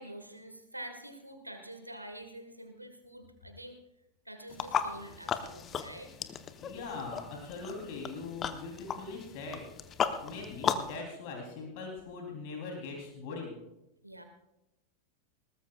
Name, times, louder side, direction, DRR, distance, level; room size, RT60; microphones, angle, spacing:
voice 1, 0.0-3.8 4.2-6.1 14.0-14.2, right 1 dB, 85° right, 6 dB, 1.7 m, -46 dB
sound 1, 4.5-11.0, left 7 dB, 25° left, 0.9 m, -36 dB
voice 2, 6.6-9.6 10.2-13.6, left 4 dB, 45° left, 0 dB, 3.3 m, -41 dB
21.0 x 19.0 x 2.4 m, 0.93 s
figure-of-eight pair, 90°, 0 cm